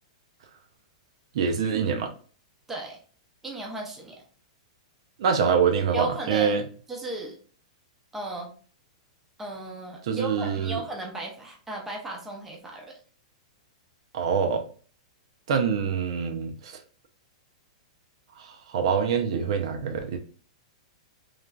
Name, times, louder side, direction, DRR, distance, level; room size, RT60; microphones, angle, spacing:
voice 1, 1.3-2.1 5.2-6.6 10.0-10.8 14.1-14.6 15.5-16.8 18.4-20.2, right 6 dB, 55° right, 0.5 m, -25 dB
voice 2, 3.4-4.2 5.9-6.5 6.9-7.3 8.1-8.5 9.4-12.9, right 2 dB, 5° right, 0.6 m, -35 dB
3.1 x 2.4 x 2.2 m
supercardioid pair, 165°, 4 cm